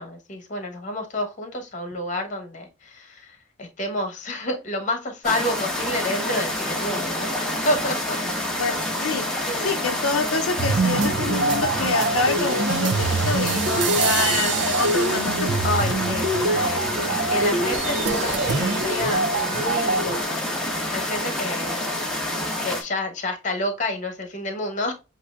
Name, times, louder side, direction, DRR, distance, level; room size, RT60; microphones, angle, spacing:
voice 1, 0.0-8.2 9.4-9.7 15.6-21.9 22.6-24.9, left 1 dB, 35° left, 1.1 m, -29 dB
sound 1, 5.2-22.8, left 1 dB, 5° left, 1.0 m, -28 dB
voice 2, 8.6-9.3 9.6-15.5, left 5 dB, 90° left, 0.6 m, -26 dB
sound 2, 10.6-20.2, right 3 dB, 55° right, 0.5 m, -24 dB
7.6 x 2.7 x 2.4 m
head